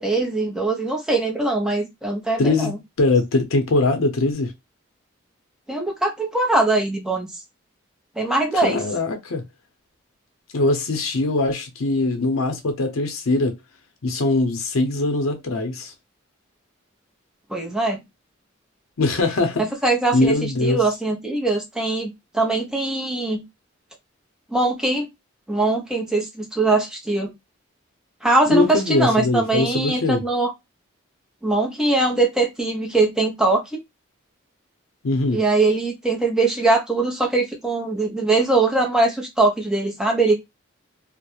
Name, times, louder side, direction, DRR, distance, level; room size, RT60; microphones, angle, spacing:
voice 1, 0.0-2.7 5.7-7.3 8.2-8.8 17.5-18.0 19.6-23.4 24.5-25.1 25.5-27.3 28.2-30.5 31.4-33.6 35.3-40.3, right 2 dB, 5° right, 0.5 m, -21 dB
voice 2, 2.4-4.5 8.5-9.4 10.5-13.6 14.0-15.9 19.0-19.6 20.1-20.8 28.5-30.2 35.0-35.4, left 2 dB, 90° left, 0.6 m, -21 dB
2.3 x 2.0 x 2.8 m
head